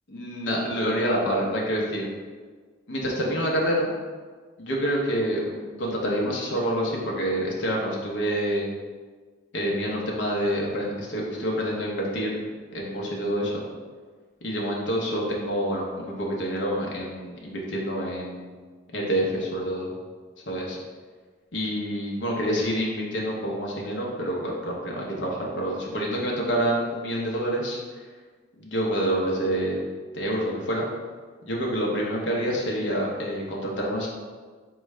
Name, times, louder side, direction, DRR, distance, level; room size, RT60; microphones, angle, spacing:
voice 1, 0.1-2.1 2.9-3.9 4.6-8.7 9.5-12.3 12.7-13.6 14.4-18.5 18.9-19.9 20.5-20.8 21.5-27.8 28.6-29.8 30.1-30.8 31.5-34.1, equal, 70° left, -2 dB, 0.7 m, -27 dB
4.6 x 2.3 x 3.1 m, 1.5 s
head